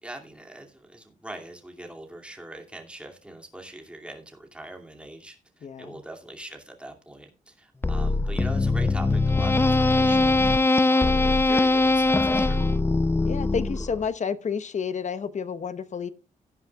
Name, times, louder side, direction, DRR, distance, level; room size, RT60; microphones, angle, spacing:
voice 1, 0.0-12.7, right 1 dB, 5° right, 2.5 m, -42 dB
voice 2, 5.6-6.0 13.2-16.1, left 6 dB, 55° left, 0.9 m, -30 dB
sound 1, 7.8-14.1, left 2 dB, 15° left, 0.5 m, -21 dB
17.0 x 9.7 x 2.3 m
cardioid pair, 100°, 14 cm